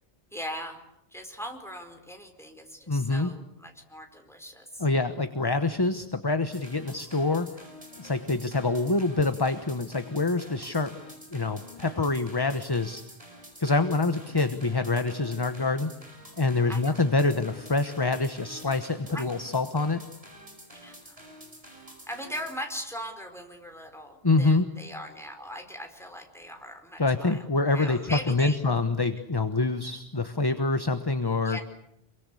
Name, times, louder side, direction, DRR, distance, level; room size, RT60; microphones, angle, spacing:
voice 1, 0.3-0.8 1.1-4.9 11.9-12.0 16.7-16.9 19.1-19.3 20.8-21.2 22.1-27.5 27.7-28.6 31.4-31.6, equal, ahead, 4 dB, 4.7 m, -39 dB
voice 2, 2.9-3.3 4.8-7.5 8.0-10.9 11.3-13.0 13.6-15.9 16.4-20.0 24.2-24.7 27.0-31.6, left 3 dB, 25° left, 9 dB, 1.2 m, -26 dB
sound 1, 6.5-22.6, equal, 35° right, 6.4 m, -48 dB
28.0 x 23.5 x 8.5 m, 0.77 s
omnidirectional pair, 1.1 m